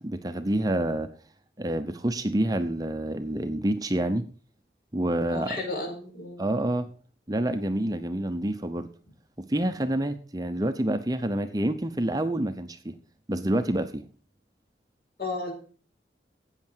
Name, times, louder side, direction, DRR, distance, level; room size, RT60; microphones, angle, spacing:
voice 1, 0.0-1.1 1.6-4.2 4.9-5.6 6.4-6.9 7.3-8.9 9.4-12.9 13.3-14.0, right 1 dB, 20° right, 9 dB, 0.7 m, -27 dB
voice 2, 5.3-6.5 15.2-15.5, left 2 dB, 55° left, 3 dB, 4.5 m, -33 dB
13.0 x 9.0 x 4.5 m, 0.40 s
head